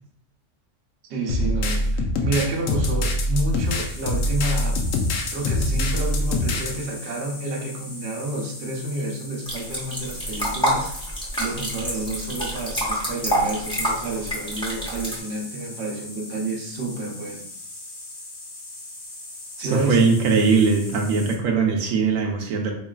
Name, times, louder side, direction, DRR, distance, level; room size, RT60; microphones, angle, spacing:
voice 1, 1.1-4.8 5.3-10.9 11.4-17.4 19.6-20.0, right 2 dB, 60° right, 0 dB, 1.0 m, -29 dB
sound 1, 1.3-6.7, left 1 dB, 80° left, 1.0 m, -23 dB
sound 2, 3.4-21.3, left 2 dB, 60° left, 1.1 m, -40 dB
sound 3, 9.5-15.2, equal, 5° left, 0.7 m, -27 dB
voice 2, 19.6-22.7, right 5 dB, 90° right, 2 dB, 1.0 m, -20 dB
4.0 x 3.0 x 2.3 m, 0.68 s
omnidirectional pair, 1.4 m